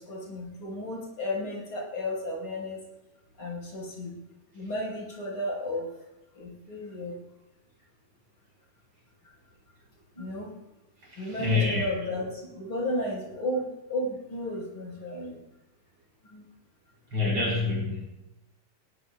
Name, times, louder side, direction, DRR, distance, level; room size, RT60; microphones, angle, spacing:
voice 1, 0.0-2.8 3.4-4.1 4.5-5.9 6.3-7.2 10.1-10.5 11.1-15.4 16.2-16.4, left 1 dB, 45° left, -4 dB, 6.0 m, -33 dB
voice 2, 11.1-11.8 17.1-18.0, left 3 dB, 40° right, -3 dB, 6.0 m, -27 dB
19.0 x 18.5 x 2.4 m, 0.97 s
omnidirectional pair, 3.4 m